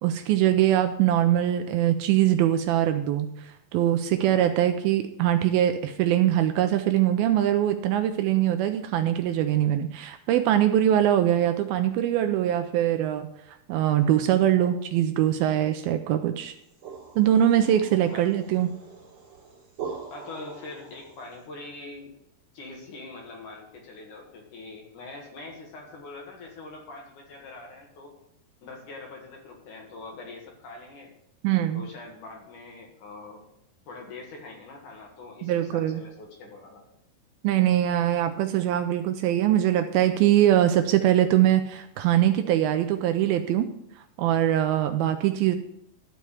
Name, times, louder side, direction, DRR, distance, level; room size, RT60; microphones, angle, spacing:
voice 1, 0.0-13.3 13.7-16.5 17.2-18.7 31.4-31.8 35.4-36.0 37.4-43.7 44.2-45.6, right 11 dB, 80° right, 8 dB, 2.3 m, -22 dB
sound 1, 16.5-21.4, right 5 dB, 35° right, 3.4 m, -42 dB
voice 2, 20.1-22.1 22.5-28.1 28.6-31.1 31.7-33.4 33.9-36.8, left 3 dB, 55° left, 1 dB, 2.8 m, -43 dB
12.5 x 4.6 x 8.2 m, 0.76 s
omnidirectional pair, 4.6 m